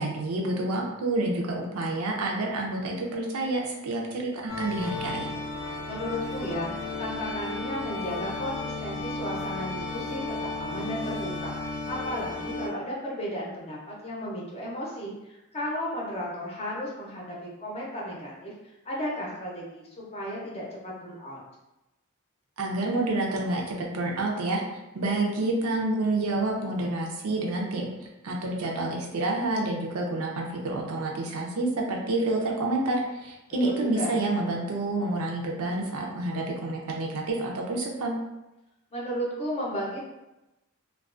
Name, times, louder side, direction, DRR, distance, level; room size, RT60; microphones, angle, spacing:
voice 1, 0.0-5.3 22.6-24.6 24.9-27.9 28.2-38.2, right 2 dB, 90° right, 0 dB, 0.5 m, -28 dB
sound 1, 4.5-12.7, left 3 dB, 70° left, 0.6 m, -34 dB
voice 2, 5.9-18.5 18.8-21.4 33.6-34.2 38.9-40.1, equal, 30° left, -4 dB, 0.6 m, -34 dB
2.3 x 2.2 x 2.4 m, 0.98 s
head